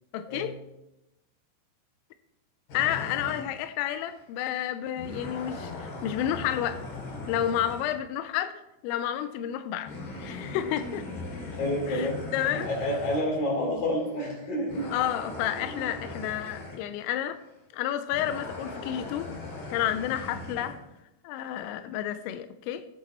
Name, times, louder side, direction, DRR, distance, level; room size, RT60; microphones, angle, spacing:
voice 1, 0.1-0.6 2.7-6.8 7.3-9.9 10.2-11.1 11.9-12.7 14.9-17.4 17.7-19.3 19.7-20.8 21.2-22.9, left 11 dB, 90° left, 10 dB, 3.2 m, -30 dB
sound 1, 2.7-3.5 4.2-4.3 5.0-7.9 9.9-13.3 14.0-14.2 14.7-16.8 18.1-20.8, left 2 dB, 55° left, 4.1 m, -39 dB
voice 2, 11.6-12.2 12.5-14.9, left 1 dB, 40° left, -3 dB, 4.9 m, -29 dB
20.5 x 8.4 x 3.0 m, 0.94 s
omnidirectional pair, 5.8 m